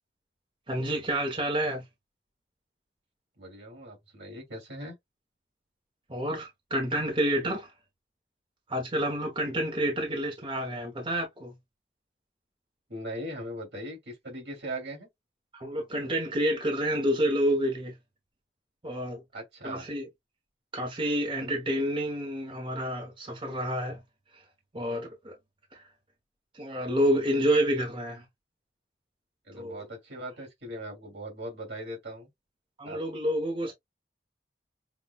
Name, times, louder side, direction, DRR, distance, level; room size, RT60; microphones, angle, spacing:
voice 1, 0.7-1.8 6.1-7.7 8.7-11.5 15.5-17.9 18.8-19.2 19.6-20.1 20.7-24.0 24.3-24.4 24.7-25.3 25.7-25.9 26.5-28.2 29.5-29.8 32.8-33.7, equal, 30° right, 1.0 m, -29 dB
voice 2, 3.4-5.0 12.9-15.1 19.3-19.9 29.4-32.3 32.8-33.0 33.6-33.7, right 1 dB, 70° right, 2.7 m, -39 dB
5.8 x 2.3 x 2.2 m
head